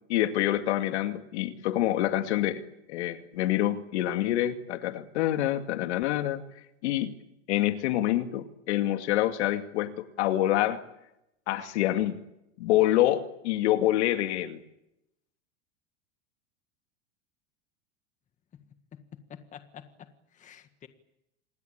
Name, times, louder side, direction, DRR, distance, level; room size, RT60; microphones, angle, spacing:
voice 1, 0.1-2.6 2.9-6.4 6.8-7.2 7.5-10.8 11.5-12.2 12.6-14.6, left 13 dB, 80° left, 8 dB, 2.4 m, -26 dB
voice 2, 18.9-20.9, left 8 dB, 20° left, 9 dB, 1.7 m, -49 dB
27.0 x 20.5 x 8.8 m, 0.86 s
supercardioid pair, 155°, 33 cm